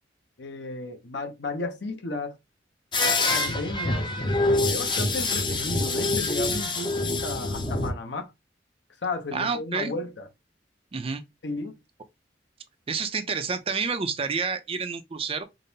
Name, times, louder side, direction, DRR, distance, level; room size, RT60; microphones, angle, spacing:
voice 1, 0.4-2.4 3.3-4.1 4.6-8.3 9.0-10.3 11.4-11.8, left 3 dB, 70° left, 0.8 m, -33 dB
sound 1, 2.9-7.9, left 2 dB, 25° left, 0.6 m, -25 dB
voice 2, 9.3-9.9 10.9-11.2 12.9-15.4, right 5 dB, 30° right, 0.4 m, -29 dB
5.1 x 2.0 x 2.7 m
head